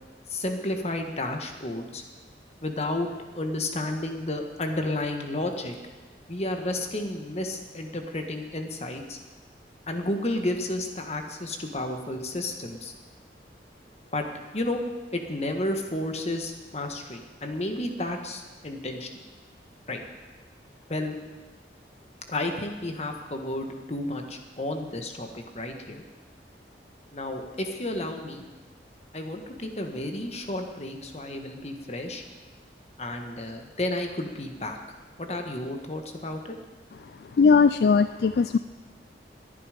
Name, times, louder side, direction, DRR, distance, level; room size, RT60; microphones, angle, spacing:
voice 1, 0.3-2.0 2.6-5.8 6.3-9.2 9.9-12.9 14.1-14.2 14.5-14.8 15.1-19.1 19.9-20.0 20.9-21.2 22.3-26.0 27.1-28.4 29.1-32.2 33.0-34.8 35.2-36.5, left 1 dB, 35° left, 4 dB, 1.6 m, -32 dB
voice 2, 37.4-38.6, left 5 dB, 60° left, 12 dB, 0.3 m, -19 dB
20.0 x 11.0 x 5.2 m, 1.3 s
head